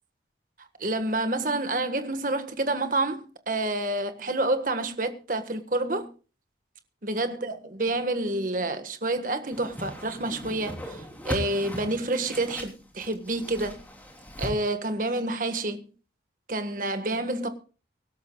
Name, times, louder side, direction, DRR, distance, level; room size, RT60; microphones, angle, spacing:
voice 1, 0.8-6.1 7.0-13.8 14.4-15.9 16.5-17.5, right 2 dB, 45° right, 1.6 m, -28 dB
Whoosh swoosh swish, 9.5-14.5, equal, 10° left, 3.3 m, -38 dB
24.5 x 12.5 x 2.4 m
head